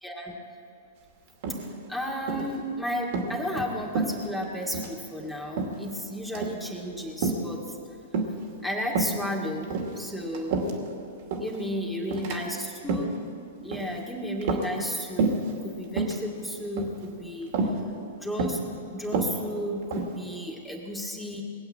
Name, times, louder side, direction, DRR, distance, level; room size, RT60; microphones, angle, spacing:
voice 1, 0.0-0.3 1.9-7.6 8.6-10.6 11.4-13.2 13.6-15.3 15.6-17.5 18.2-18.6 18.9-21.4, equal, 5° left, -2 dB, 2.2 m, -33 dB
sound 1, 1.4-1.9 2.3-2.6 3.0-3.3 3.9-4.5 4.7-5.0 5.6-5.9 6.3-6.6 7.2-7.5 8.1-8.5 8.9-9.2 9.6-10.9 11.3-11.6 12.1-12.4 12.8-13.2 13.7-14.0 14.4-14.9 15.2-15.5 15.9-16.2 16.8-17.1 17.5-17.8 18.4-18.7 19.0-20.2, right 3 dB, 55° right, 2.4 m, -28 dB
20.0 x 8.0 x 8.7 m, 2.5 s
hypercardioid pair, 110°, 0 cm